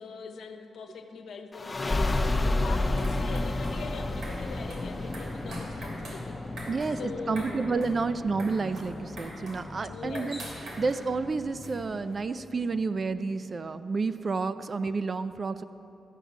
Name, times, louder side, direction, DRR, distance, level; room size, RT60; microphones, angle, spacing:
voice 1, 0.0-6.4 6.9-7.9 9.9-10.5, left 5 dB, 80° left, 5 dB, 1.0 m, -42 dB
sound 1, 1.5-12.8, left 2 dB, 20° left, 0.6 m, -32 dB
sound 2, 2.7-12.2, right 1 dB, 90° right, 3.2 m, -46 dB
voice 2, 6.7-10.4 10.8-15.6, right 4 dB, 35° right, 12 dB, 0.4 m, -30 dB
13.5 x 6.2 x 8.0 m, 3.0 s
wide cardioid pair, 140°, 0 cm